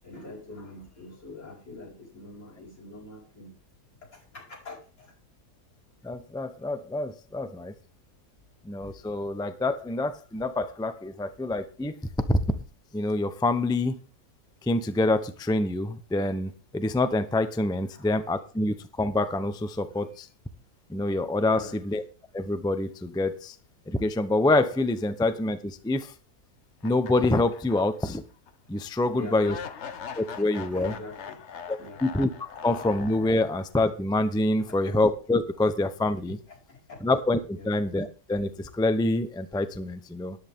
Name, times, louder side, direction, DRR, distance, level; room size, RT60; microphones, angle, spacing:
voice 1, 0.0-3.5 4.1-5.2 8.9-9.0 17.9-18.1 19.6-20.1 21.4-21.8 29.0-29.7 30.5-32.2 34.6-34.9 36.5-37.0 37.5-37.8, left 2 dB, 85° left, -4 dB, 5.8 m, -45 dB
voice 2, 6.0-7.7 8.6-11.9 12.3-12.4 12.9-13.9 14.6-20.3 20.9-22.0 22.3-23.5 23.9-26.1 26.8-28.2 28.7-29.6 30.2-30.9 32.0-32.3 32.6-36.4 37.0-37.4 37.6-40.4, left 2 dB, 5° left, 10 dB, 0.4 m, -26 dB
sound 1, 26.8-28.1 28.5-28.6 29.4-33.7, left 7 dB, 50° left, 1.0 m, -41 dB
13.0 x 10.5 x 3.6 m, 0.37 s
omnidirectional pair, 1.7 m